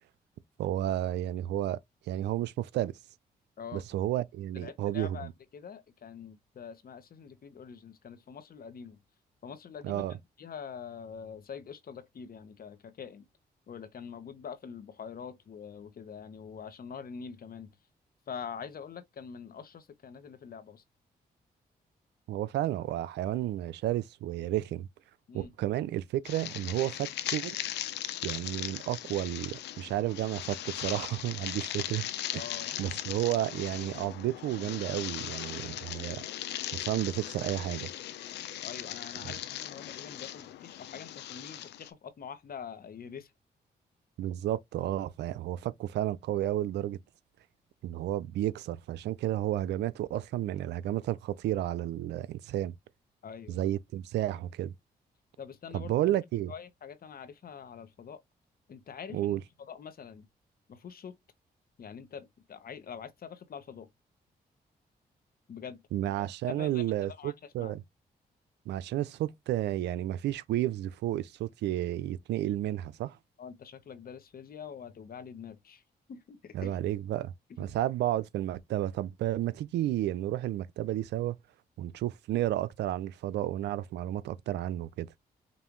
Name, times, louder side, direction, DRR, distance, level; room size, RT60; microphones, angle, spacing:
voice 1, 0.6-1.8 2.1-2.9 3.7-5.3 9.8-10.1 22.3-24.9 25.3-27.6 28.2-32.1 32.3-32.4 32.8-36.2 36.7-37.9 39.2-39.3 44.2-47.0 47.8-52.7 53.5-54.7 55.7-56.5 59.1-59.4 65.9-67.8 68.7-73.2 76.5-77.3 77.6-81.3 81.8-85.1, right 13 dB, 85° right, 0.4 m, -32 dB
voice 2, 4.5-9.0 9.4-10.0 10.4-13.3 13.7-17.7 18.3-20.8 25.3-25.5 32.3-32.8 38.6-43.3 53.2-53.7 55.4-56.0 56.5-58.2 58.7-60.3 60.7-61.2 61.8-63.9 65.5-65.8 66.2-67.8 73.4-75.8 76.1-76.8 77.6-77.7, left 7 dB, 60° left, 1.1 m, -45 dB
sound 1, 26.2-41.9, left 12 dB, 90° left, 0.6 m, -39 dB
5.4 x 2.5 x 3.0 m
cardioid pair, 65°, 17 cm